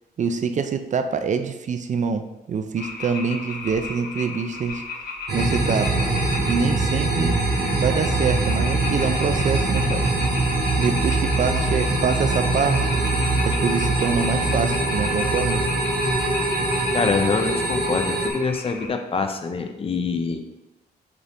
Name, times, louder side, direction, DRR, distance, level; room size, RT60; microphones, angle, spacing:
voice 1, 0.2-4.8 5.3-6.1 6.5-7.4 7.8-10.1 10.8-13.0 13.4-15.7, right 6 dB, 50° right, 8 dB, 0.5 m, -25 dB
sound 1, 2.8-18.9, left 3 dB, 70° left, 1.2 m, -34 dB
sound 2, 5.3-18.3, right 2 dB, 80° right, 1.4 m, -23 dB
voice 2, 16.9-20.4, left 4 dB, 35° left, 6 dB, 0.6 m, -25 dB
8.1 x 3.8 x 3.6 m, 1.0 s
wide cardioid pair, 145°, 17 cm